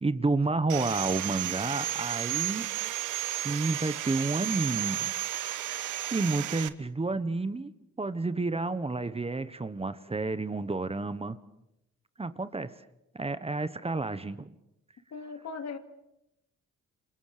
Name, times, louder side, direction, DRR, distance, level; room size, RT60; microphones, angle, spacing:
voice 1, 0.0-2.7 3.4-5.1 6.1-7.7 8.0-11.4 12.2-12.7 13.1-14.5, right 3 dB, 20° right, 13 dB, 1.3 m, -30 dB
Sawing, 0.7-6.7, right 13 dB, 85° right, 1.3 m, -33 dB
voice 2, 15.1-15.8, left 5 dB, 60° left, 7 dB, 2.8 m, -38 dB
28.5 x 25.5 x 6.8 m, 0.86 s
cardioid pair, 90°, 30 cm